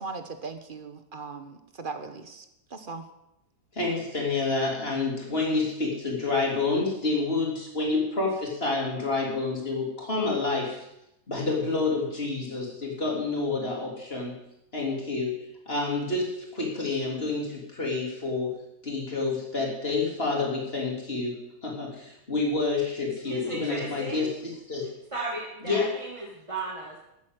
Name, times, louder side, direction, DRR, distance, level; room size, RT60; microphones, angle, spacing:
voice 1, 0.0-2.4 2.7-3.1, right 4 dB, 35° right, 8 dB, 1.3 m, -38 dB
voice 2, 3.7-10.9 11.3-14.4 14.7-18.5 18.8-24.3 24.7-24.9 25.7-25.8, left 3 dB, 40° left, -2 dB, 4.0 m, -28 dB
voice 3, 23.2-24.3 25.1-27.0, right 2 dB, 20° right, -3 dB, 2.2 m, -35 dB
13.5 x 8.4 x 8.2 m, 0.83 s
omnidirectional pair, 1.7 m